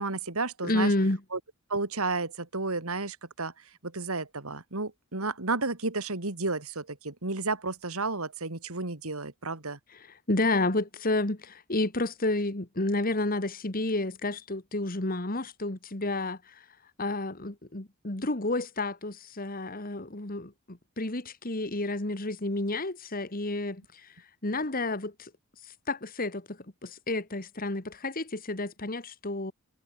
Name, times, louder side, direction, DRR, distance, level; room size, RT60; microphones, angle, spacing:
voice 1, 0.0-0.9 1.3-1.4 1.7-3.5 3.8-9.8, right 3 dB, 75° right, 2.8 m, -32 dB
voice 2, 0.6-1.2 10.3-16.4 17.0-23.8 24.4-25.3 25.9-29.5, left 2 dB, 40° left, 2.0 m, -30 dB
head